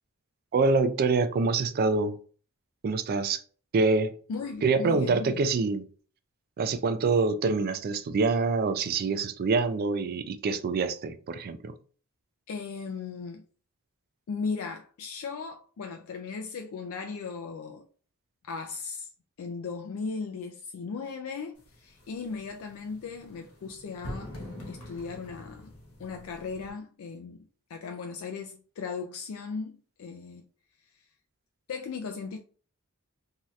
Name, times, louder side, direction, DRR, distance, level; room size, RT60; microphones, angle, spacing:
voice 1, 0.5-2.2 2.8-3.4 3.7-4.1 4.6-5.8 6.6-11.7, right 4 dB, 45° right, 0.3 m, -26 dB
voice 2, 4.3-5.4 12.5-13.4 14.3-17.9 18.4-19.1 19.4-24.4 24.7-25.7 26.0-27.4 27.7-30.5 30.9-31.0 31.7-32.4, left 5 dB, 65° left, 0.3 m, -37 dB
sound 1, 21.6-26.7, left 1 dB, 85° left, 1.1 m, -45 dB
3.1 x 2.7 x 2.4 m
head